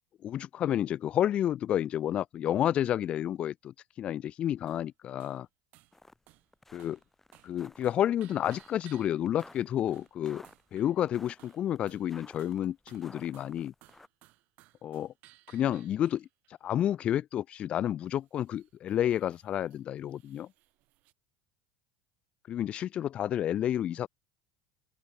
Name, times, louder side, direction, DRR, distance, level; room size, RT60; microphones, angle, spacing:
voice 1, 0.2-5.5 6.7-7.0 7.4-10.4 10.7-13.7 14.8-15.1 15.5-16.3 16.6-20.5 22.5-24.1, left 11 dB, 40° left, 0.4 m, -30 dB
sound 1, 4.7-4.9 5.2-5.4 5.7-6.0 6.3-6.5 6.8-7.1 7.3-7.6 7.8-9.6 9.9-10.2 10.4-11.0 11.4-12.1 12.4-16.5 18.1-21.1, right 20 dB, 60° right, 1.7 m, -61 dB
sound 2, 5.9-6.2 6.5-14.1, left 2 dB, 10° left, 4.6 m, -54 dB
open air
supercardioid pair, 105°, 3 cm